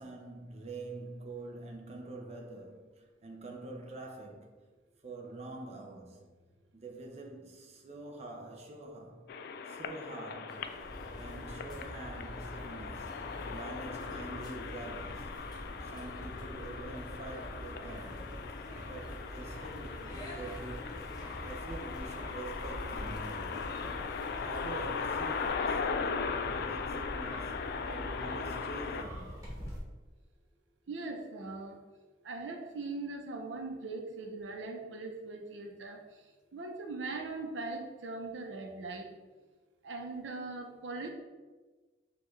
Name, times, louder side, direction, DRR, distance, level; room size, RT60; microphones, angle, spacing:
voice 1, 0.0-4.5 5.0-6.3 6.7-9.3 9.7-10.7 11.2-15.3 15.8-18.3 18.8-21.0 21.4-23.6 24.3-27.6 27.9-29.4, right 2 dB, 35° right, 0.5 m, -46 dB
sound 1, 9.3-29.0, left 5 dB, 60° left, 0.3 m, -39 dB
sound 2, 10.5-25.5, equal, 20° left, 0.8 m, -51 dB
Wind, 10.8-29.8, equal, 20° right, 1.5 m, -45 dB
voice 2, 30.9-31.8 32.2-36.0 36.5-39.1 39.8-41.1, right 3 dB, 85° right, 0.6 m, -40 dB
6.3 x 2.3 x 3.1 m
head